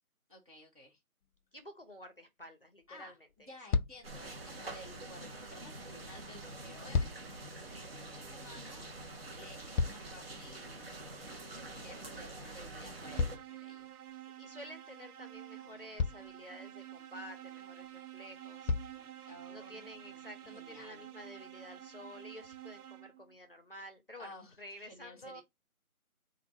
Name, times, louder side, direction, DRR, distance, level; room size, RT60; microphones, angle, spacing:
voice 1, 0.3-1.0 2.9-3.2 3.5-7.4 7.8-11.0 11.5-13.9 19.2-21.0 24.2-25.4, left 1 dB, 25° right, 0.7 m, -54 dB
sound 1, 1.2-1.4 2.8-2.9 3.3-3.4 3.7-4.2 6.6-7.4 9.3-10.4 13.2-14.2 15.3-15.4 16.0-16.4 17.9-18.0 18.7-19.1 19.9-20.0, left 5 dB, 85° left, 0.5 m, -34 dB
voice 2, 1.5-3.1 3.4-3.6 14.4-18.7 19.5-25.4, equal, 40° left, 0.6 m, -51 dB
sound 2, 4.0-13.4, right 2 dB, 40° right, 1.2 m, -46 dB
sound 3, 13.0-23.4, right 12 dB, 90° right, 0.6 m, -50 dB
4.4 x 2.6 x 4.1 m
figure-of-eight pair, 170°, 44 cm